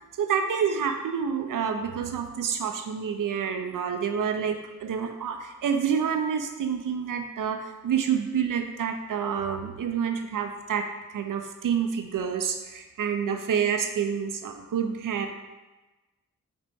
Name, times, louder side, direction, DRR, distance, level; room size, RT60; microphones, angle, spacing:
voice 1, 0.2-15.4, right 7 dB, 70° right, 6 dB, 0.6 m, -28 dB
5.1 x 2.9 x 3.5 m, 1.1 s
cardioid pair, 50°, 33 cm